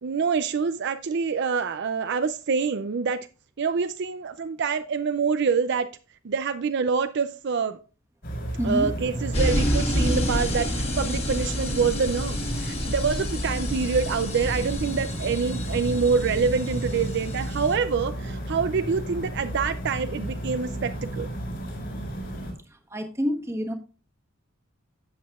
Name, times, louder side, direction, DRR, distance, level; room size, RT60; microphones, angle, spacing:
voice 1, 0.0-3.3 3.6-5.9 6.2-7.8 8.6-21.3, right 5 dB, 55° right, 10 dB, 0.4 m, -26 dB
sound 1, 8.2-22.5, right 1 dB, 55° left, 4.2 m, -33 dB
voice 2, 8.6-8.9 22.9-23.7, equal, 15° right, 3 dB, 1.3 m, -27 dB
sound 2, 9.3-17.8, equal, 30° left, 1.8 m, -29 dB
12.5 x 8.3 x 2.4 m, 0.34 s
head